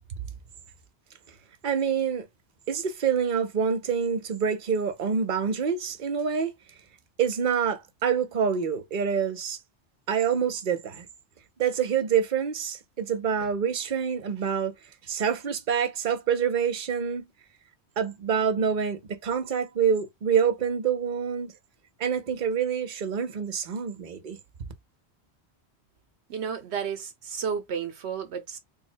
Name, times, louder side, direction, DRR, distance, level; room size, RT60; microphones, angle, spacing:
voice 1, 1.6-2.3 2.7-6.5 7.2-9.6 10.1-11.1 11.6-14.7 15.1-17.2 18.0-21.5 22.0-24.4, right 7 dB, 50° right, 1.0 m, -26 dB
voice 2, 26.3-28.6, right 7 dB, 75° right, 1.0 m, -32 dB
3.5 x 2.1 x 4.3 m
omnidirectional pair, 1.1 m